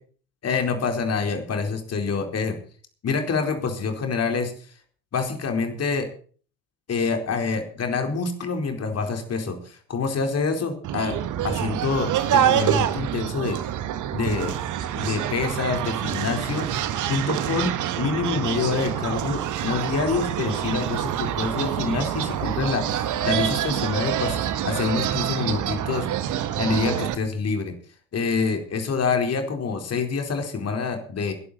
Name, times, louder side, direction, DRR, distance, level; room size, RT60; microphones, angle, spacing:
voice 1, 0.4-2.6 3.0-4.5 5.1-6.1 6.9-11.2 11.4-13.6 14.1-14.6 15.0-16.7 17.1-26.1 26.6-27.7 28.1-31.3, left 4 dB, 40° left, 5 dB, 4.3 m, -26 dB
sound 1, 10.8-27.1, right 11 dB, 50° right, 1.7 m, -26 dB
21.0 x 11.5 x 4.2 m, 0.43 s
figure-of-eight pair, 55°, 40 cm